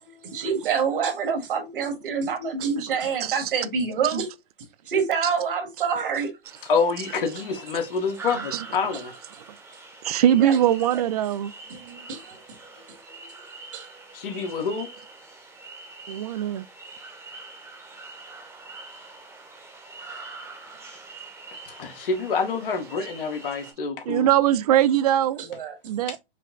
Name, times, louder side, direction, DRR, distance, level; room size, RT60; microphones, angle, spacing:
voice 1, 0.0-4.3 4.9-6.3 10.3-10.6 11.7-12.4 13.2-13.3 13.7-13.9 25.4-26.2, right 6 dB, 60° right, 1.7 m, -27 dB
sound 1, 6.4-23.7, right 3 dB, 10° right, 1.0 m, -44 dB
voice 2, 6.7-9.1 14.1-14.9 21.7-24.3, left 5 dB, 60° left, 1.3 m, -27 dB
voice 3, 10.0-11.5 16.1-16.6 24.1-25.4 25.9-26.2, right 11 dB, 40° right, 0.4 m, -21 dB
5.8 x 2.1 x 3.8 m
hypercardioid pair, 145°, 30 cm